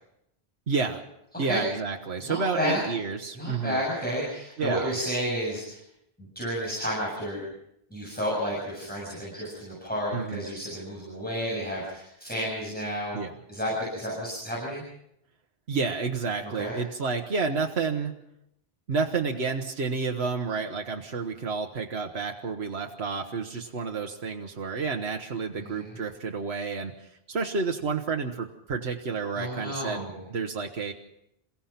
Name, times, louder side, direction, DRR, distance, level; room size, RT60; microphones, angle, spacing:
voice 1, 0.7-1.0 1.4-3.8 4.6-4.9 10.1-10.4 13.1-13.3 15.7-18.1 18.9-26.9 27.3-30.9, right 4 dB, 85° right, 3 dB, 1.5 m, -30 dB
voice 2, 2.2-2.8 3.3-5.8 6.4-7.4 7.9-13.2 13.5-14.8 16.6-16.8 25.6-25.9 29.4-30.2, equal, 10° left, -5 dB, 7.3 m, -31 dB
28.5 x 16.0 x 5.8 m, 0.80 s
omnidirectional pair, 1.1 m